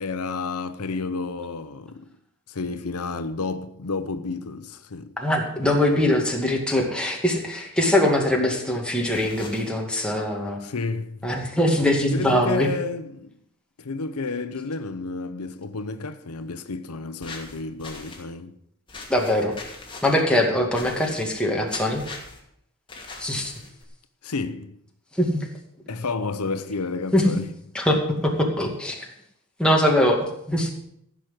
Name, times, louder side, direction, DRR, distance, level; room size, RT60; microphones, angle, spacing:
voice 1, 0.0-2.1 2.5-5.2 10.6-11.3 12.1-13.4 13.8-18.6 24.2-24.8 25.9-27.5 30.6-30.7, left 4 dB, 85° left, 0.8 m, -31 dB
voice 2, 5.2-10.6 11.2-12.7 19.1-19.5 20.0-22.0 23.2-23.5 25.1-25.5 27.1-27.2 27.7-29.1 29.6-30.7, left 1 dB, 5° left, 2.3 m, -22 dB
sound 1, 9.1-9.7 17.2-18.2 18.9-20.2 20.7-21.4 21.7-22.4 22.9-23.8, left 3 dB, 25° left, 2.6 m, -41 dB
15.0 x 6.2 x 7.8 m
head